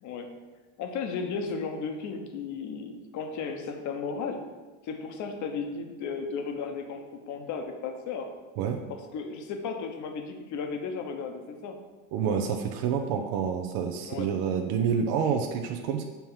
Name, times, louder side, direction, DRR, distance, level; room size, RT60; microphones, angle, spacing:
voice 1, 0.8-4.4 4.8-8.3 8.9-11.8 14.0-14.3, left 5 dB, 45° left, 5 dB, 0.9 m, -35 dB
voice 2, 12.1-16.0, right 7 dB, 60° right, 4 dB, 0.7 m, -28 dB
7.0 x 3.0 x 5.6 m, 1.3 s
supercardioid pair, 110°, 40 cm